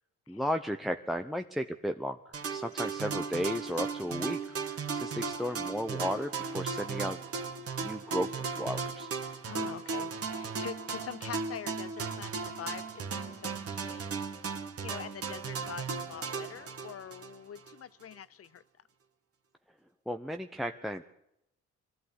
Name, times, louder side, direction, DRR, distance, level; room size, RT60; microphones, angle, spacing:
voice 1, 0.3-2.2 2.5-4.4 4.7-7.2 7.8-9.1 20.1-21.0, equal, ahead, 5 dB, 0.9 m, -34 dB
sound 1, 2.3-17.7, right 5 dB, 50° right, 2.4 m, -36 dB
voice 2, 9.4-14.3 14.8-18.6, left 9 dB, 50° left, 17 dB, 0.9 m, -44 dB
22.0 x 14.0 x 9.8 m, 0.80 s
cardioid pair, 90°, 30 cm